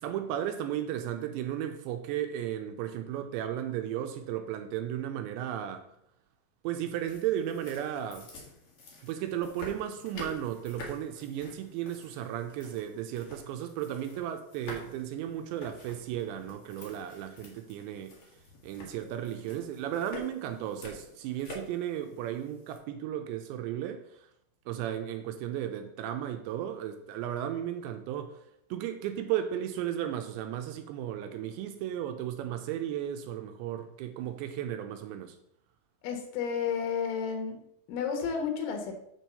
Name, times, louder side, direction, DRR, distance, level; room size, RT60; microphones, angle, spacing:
voice 1, 0.0-5.9 6.6-8.3 9.0-18.2 18.6-24.2 24.7-28.4 28.7-35.4, right 11 dB, 85° right, 2.8 m, -35 dB
sound 1, 6.9-22.8, left 2 dB, 65° left, 1.4 m, -48 dB
voice 2, 36.0-37.6 37.9-38.9, left 6 dB, 85° left, 3.7 m, -31 dB
7.6 x 4.6 x 6.7 m
omnidirectional pair, 5.3 m